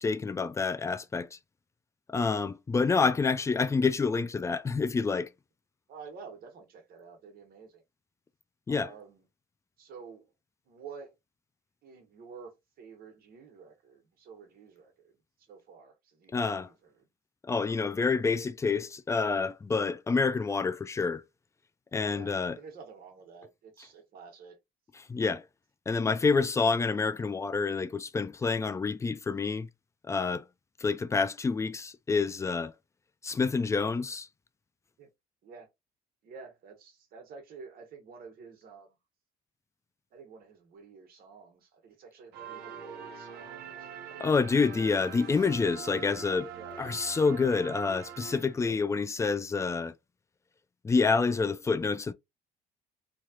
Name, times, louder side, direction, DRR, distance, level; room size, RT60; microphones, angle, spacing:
voice 1, 0.0-1.4 2.1-5.3 8.7-8.9 16.3-16.7 17.4-21.2 21.9-22.6 25.1-25.4 25.9-29.7 30.1-30.4 30.8-32.7 33.2-34.3 44.2-46.5 46.8-49.9 50.8-52.1, left 4 dB, 15° left, 0.3 m, -28 dB
voice 2, 5.9-7.8 8.7-9.3 9.8-10.3 10.6-11.1 11.8-12.5 12.8-17.1 22.1-24.6 35.0-35.1 35.4-35.7 36.2-39.0 40.1-44.5 46.5-46.8 48.6-48.8, right 5 dB, 60° right, 1.3 m, -50 dB
sound 1, 42.3-48.9, right 7 dB, 75° right, 1.0 m, -44 dB
3.2 x 2.3 x 2.8 m
cardioid pair, 110°, 17 cm